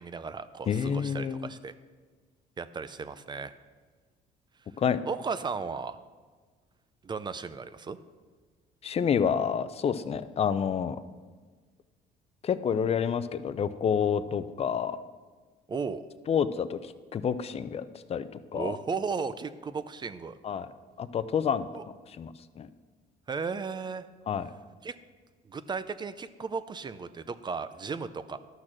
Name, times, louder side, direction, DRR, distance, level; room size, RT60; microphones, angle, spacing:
voice 1, 0.0-1.7 2.6-3.5 5.0-6.0 7.0-8.0 15.7-16.0 18.5-20.4 21.7-21.8 23.3-24.1 24.8-24.9 25.4-28.4, right 5 dB, 25° right, 13 dB, 0.5 m, -35 dB
voice 2, 0.7-1.5 4.8-5.0 8.8-11.0 12.4-15.0 16.3-17.8 18.1-18.7 20.4-20.7 21.0-21.7 22.2-22.3 22.6-22.7 24.3-24.5, left 7 dB, 35° left, 14 dB, 0.6 m, -28 dB
12.0 x 6.5 x 6.2 m, 1.4 s
cardioid pair, 110°, 17 cm